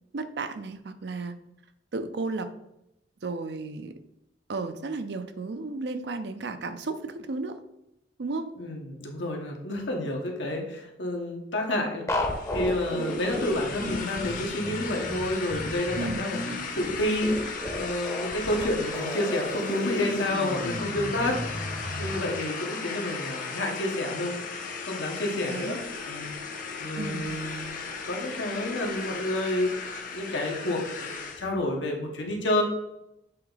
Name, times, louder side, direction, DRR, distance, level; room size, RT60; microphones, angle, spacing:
voice 1, 0.1-1.4 1.9-2.5 3.2-4.0 4.5-7.6 8.2-8.5 15.9-16.3 25.5-25.8 26.9-27.3, right 3 dB, 65° right, 10 dB, 0.5 m, -33 dB
voice 2, 8.6-12.1 12.5-16.4 16.7-17.3 17.7-21.7 22.0-24.3 24.9-25.8 26.0-26.3 26.8-29.7 30.1-32.6, left 1 dB, 85° left, 1 dB, 1.4 m, -29 dB
sound 1, 12.1-22.3, left 1 dB, 15° left, 0.7 m, -34 dB
sound 2, 12.2-31.5, left 4 dB, 45° left, 0.9 m, -36 dB
7.6 x 3.5 x 3.9 m, 0.85 s
head